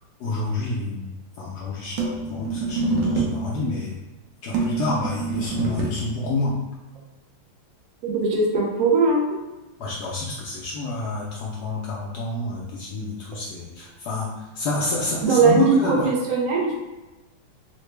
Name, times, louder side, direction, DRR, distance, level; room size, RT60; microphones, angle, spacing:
voice 1, 0.2-1.0 1.4-3.9 4.4-6.6 9.8-16.1, left 2 dB, 85° left, -5 dB, 0.9 m, -28 dB
sound 1, 2.0-3.5 4.5-6.0, right 3 dB, 70° right, 1.2 m, -25 dB
voice 2, 8.0-9.4 15.2-16.8, right 4 dB, 90° right, -2 dB, 0.7 m, -20 dB
3.8 x 2.1 x 3.2 m, 1.1 s
omnidirectional pair, 2.3 m